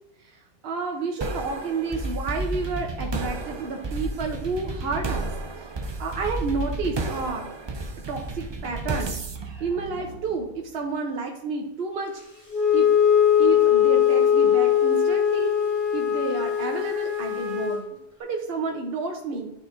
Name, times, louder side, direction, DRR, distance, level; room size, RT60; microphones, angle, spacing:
voice 1, 0.3-5.3 5.6-5.7 6.0-7.5 8.1-9.2 9.6-12.2 12.7-12.9 13.4-15.5 15.9-17.9 18.2-19.5, right 4 dB, 70° right, 2 dB, 1.1 m, -30 dB
sound 1, 1.2-10.6, right 2 dB, 35° right, 0.5 m, -32 dB
Wind instrument woodwind instrument, 12.5-17.8, left 9 dB, 50° left, 1.9 m, -20 dB
11.5 x 4.2 x 2.6 m, 0.85 s
omnidirectional pair, 1.1 m